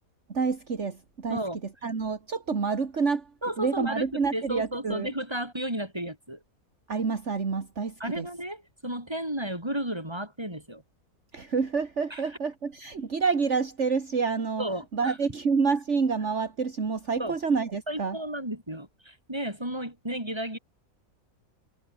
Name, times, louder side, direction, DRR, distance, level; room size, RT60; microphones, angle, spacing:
voice 1, 0.3-1.4 1.8-3.3 3.6-5.1 6.9-8.3 11.3-14.6 14.9-18.2, right 5 dB, 55° right, 2.3 m, -28 dB
voice 2, 1.3-1.6 3.4-6.4 8.0-10.8 12.1-12.2 14.6-15.2 17.2-17.4 17.9-20.6, right 1 dB, 15° right, 7.0 m, -33 dB
omnidirectional pair, 1.5 m